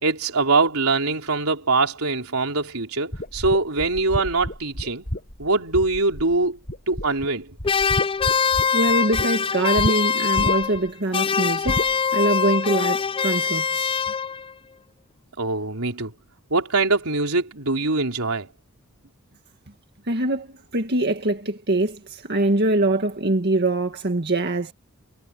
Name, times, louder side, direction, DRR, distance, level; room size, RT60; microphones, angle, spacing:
voice 1, 0.0-5.0 5.4-6.6 6.9-7.6 15.4-16.1 16.5-18.5, right 3 dB, 80° right, 3.8 m, -23 dB
sound 1, 3.1-6.4 6.7-7.3 7.6-9.3 9.8-10.0 10.4-10.9 11.7-11.9, left 1 dB, 45° left, 7.9 m, -29 dB
sound 2, 7.6-10.9 11.1-14.5, left 6 dB, 25° left, 0.4 m, -23 dB
voice 2, 8.7-11.8 12.1-14.0 20.1-24.7, right 2 dB, 50° right, 2.0 m, -23 dB
head